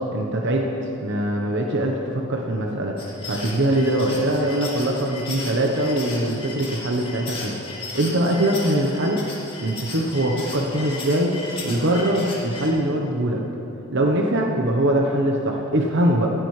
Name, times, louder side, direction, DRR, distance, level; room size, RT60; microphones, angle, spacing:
voice 1, 0.1-0.7 1.0-3.0 3.2-9.2 9.6-13.4 13.9-16.3, right 1 dB, 55° right, 1 dB, 1.0 m, -22 dB
sound 1, 3.0-12.7, left 3 dB, 25° left, 2.5 m, -35 dB
16.5 x 13.5 x 3.3 m, 2.8 s
head